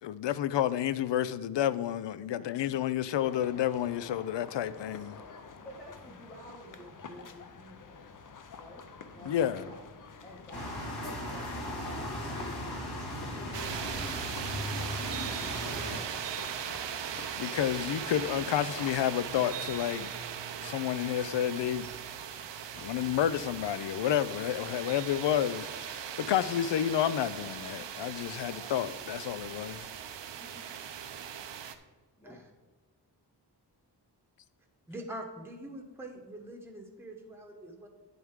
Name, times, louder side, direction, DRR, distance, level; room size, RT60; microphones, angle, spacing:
voice 1, 0.0-5.2 9.2-9.7 17.4-20.1 20.6-21.9 22.7-29.9, left 10 dB, 90° left, 0.5 m, -30 dB
voice 2, 2.3-2.6 5.6-8.1 8.5-8.9 9.1-9.8 10.2-12.9 13.3-14.0 15.4-16.7 30.4-30.8 32.2-32.4, equal, 15° left, 1.5 m, -51 dB
sound 1, 3.1-20.1, left 5 dB, 50° left, 0.6 m, -49 dB
sound 2, 10.5-16.0, equal, 65° left, 2.1 m, -37 dB
sound 3, 13.5-31.7, right 8 dB, 90° right, 0.7 m, -39 dB
voice 3, 34.9-37.9, right 1 dB, 5° right, 0.9 m, -44 dB
9.5 x 7.8 x 3.6 m
wide cardioid pair, 180°, 42 cm